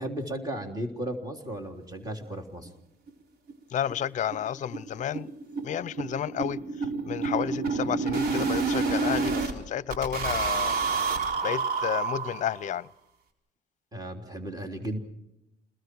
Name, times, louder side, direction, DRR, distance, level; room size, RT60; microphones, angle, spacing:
voice 1, 0.0-2.7 13.9-15.0, right 1 dB, 20° right, 3.6 m, -35 dB
sound 1, 2.7-2.8 3.1-3.2 3.5-3.6 3.9-4.1 4.3-9.5 9.9-12.7, right 4 dB, 65° right, 3.9 m, -29 dB
voice 2, 3.7-5.3 5.6-6.6 7.0-10.8 11.4-12.9, left 9 dB, 45° left, 0.7 m, -31 dB
29.5 x 21.0 x 4.7 m
cardioid pair, 110°, 17 cm